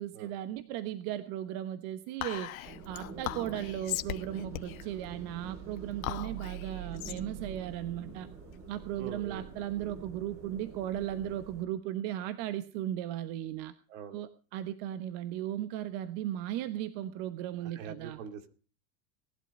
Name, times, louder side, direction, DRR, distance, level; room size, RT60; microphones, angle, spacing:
voice 1, 0.0-8.3 8.7-13.7 14.1-18.2, right 12 dB, 60° right, 11 dB, 1.2 m, -36 dB
Whispering, 2.2-8.9, left 14 dB, 85° left, 1.4 m, -40 dB
sound 1, 2.6-11.6, right 6 dB, 35° right, 5.4 m, -45 dB
voice 2, 9.0-9.5 13.9-14.2 17.6-18.5, right 8 dB, 75° right, 8 dB, 2.6 m, -43 dB
19.0 x 11.5 x 5.4 m, 0.40 s
supercardioid pair, 115°, 40 cm